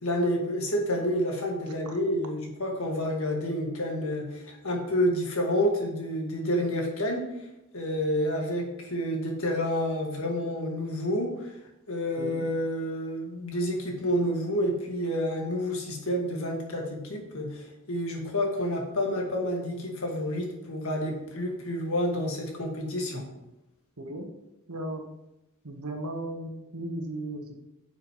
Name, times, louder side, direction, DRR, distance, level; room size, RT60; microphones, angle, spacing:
voice 1, 0.0-7.2 7.7-11.3 11.9-23.2, equal, 65° left, 0 dB, 1.8 m, -29 dB
voice 2, 24.0-24.3 24.7-25.0 25.6-27.5, right 1 dB, 85° right, 3 dB, 1.3 m, -36 dB
9.4 x 6.5 x 3.1 m, 0.90 s
head